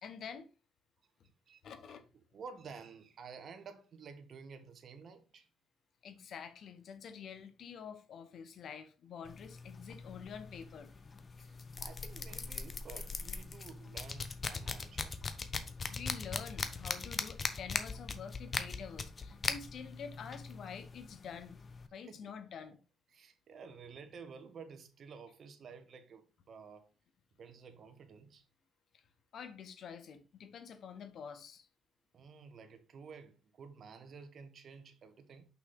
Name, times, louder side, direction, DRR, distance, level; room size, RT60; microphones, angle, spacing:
voice 1, 0.0-0.5 1.6-2.0 6.0-10.9 15.9-21.6 21.9-22.8 29.3-31.7, left 7 dB, 65° left, 1.2 m, -47 dB
voice 2, 1.9-5.5 11.4-15.2 22.0-22.3 23.1-26.9 27.4-28.5 32.1-35.5, right 5 dB, 55° right, 1.2 m, -52 dB
sound 1, 9.3-21.9, left 4 dB, 35° left, 1.0 m, -41 dB
5.9 x 5.9 x 3.9 m
cardioid pair, 90°, 0 cm